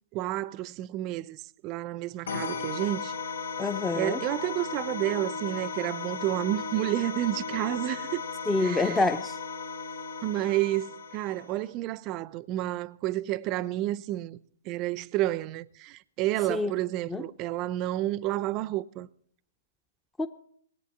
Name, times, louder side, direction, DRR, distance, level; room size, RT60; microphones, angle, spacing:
voice 1, 0.1-3.1 3.9-8.2 8.6-9.0 10.2-14.4 14.6-19.1, right 15 dB, 35° right, 0.6 m, -30 dB
sound 1, 2.3-11.7, left 5 dB, 75° left, 0.9 m, -36 dB
voice 2, 3.6-4.2 8.5-9.4 16.5-16.7 17.1-17.2 20.2-20.3, left 3 dB, 10° left, 0.6 m, -27 dB
20.0 x 8.4 x 7.1 m
hypercardioid pair, 125°, 0 cm